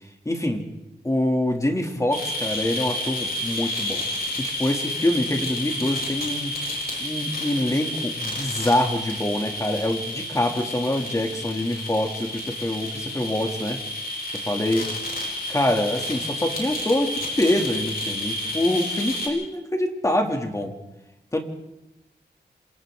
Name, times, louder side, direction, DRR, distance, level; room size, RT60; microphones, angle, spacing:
voice 1, 0.2-0.7 1.0-4.0 4.4-6.7 7.0-13.8 14.3-14.9 15.5-20.8 21.3-21.4, left 1 dB, 20° left, 2 dB, 2.7 m, -25 dB
sound 1, 2.1-19.3, left 1 dB, 60° left, 7.6 m, -30 dB
27.5 x 27.0 x 3.8 m, 0.94 s
wide cardioid pair, 120°, 18 cm